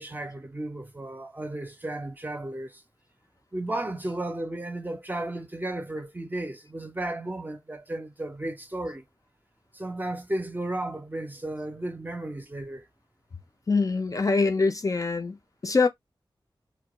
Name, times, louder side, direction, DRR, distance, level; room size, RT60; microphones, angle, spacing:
voice 1, 0.0-2.8 3.5-9.0 9.7-12.8, right 1 dB, 20° right, 0.5 m, -34 dB
voice 2, 13.7-15.4 15.6-15.9, left 4 dB, 40° left, 0.4 m, -24 dB
2.2 x 2.2 x 2.9 m
wide cardioid pair, 80°, 9 cm